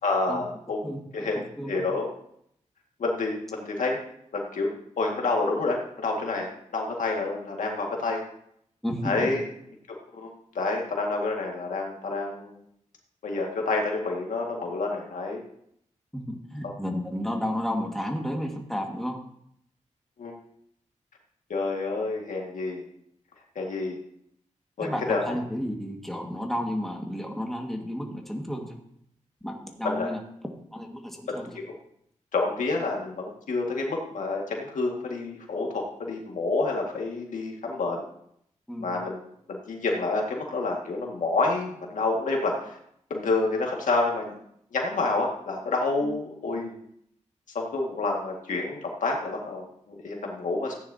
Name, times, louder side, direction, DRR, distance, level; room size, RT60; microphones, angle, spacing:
voice 1, 0.0-0.8 1.1-1.4 1.7-2.1 3.0-4.0 4.3-4.7 5.0-8.2 9.0-9.4 10.1-12.6 13.2-15.4 20.2-20.4 21.5-22.8 23.6-24.0 24.8-25.4 29.8-30.1 31.3-31.4 32.3-38.0 38.8-39.2 39.5-42.8 43.1-44.3 44.7-46.8 47.5-50.7, left 3 dB, 80° left, 0 dB, 1.9 m, -28 dB
voice 2, 0.8-1.3 1.6-1.8 8.8-9.1 16.3-19.2 24.8-28.8 29.4-30.2 30.7-31.4 38.7-38.9, equal, ahead, 1 dB, 1.8 m, -32 dB
14.5 x 9.6 x 2.8 m, 0.71 s
wide cardioid pair, 90°, 13 cm